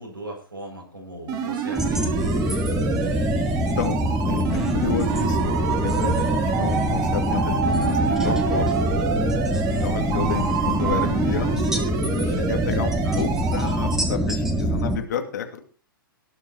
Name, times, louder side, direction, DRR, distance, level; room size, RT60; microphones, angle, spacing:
voice 1, 0.0-2.2 9.6-10.2 13.0-13.2, equal, 80° right, -1 dB, 7.6 m, -38 dB
sound 1, 1.3-14.0, right 6 dB, 30° right, 2.4 m, -30 dB
sound 2, 1.8-15.0, equal, 5° right, 2.1 m, -24 dB
voice 2, 3.8-8.8 9.6-15.6, left 8 dB, 55° left, 6 dB, 2.5 m, -31 dB
sound 3, 4.8-11.1, right 7 dB, 45° right, 2.7 m, -29 dB
18.5 x 7.0 x 4.7 m, 0.38 s
figure-of-eight pair, 110°, 12 cm